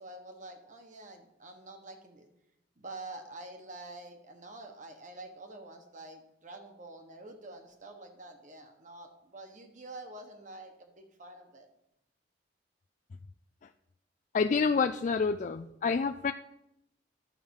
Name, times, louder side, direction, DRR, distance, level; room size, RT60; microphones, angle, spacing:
voice 1, 0.0-2.3 2.8-11.7, right 2 dB, 45° right, 5 dB, 1.4 m, -47 dB
voice 2, 14.3-16.3, left 5 dB, 40° left, 7 dB, 0.3 m, -28 dB
11.0 x 5.1 x 7.1 m, 0.83 s
head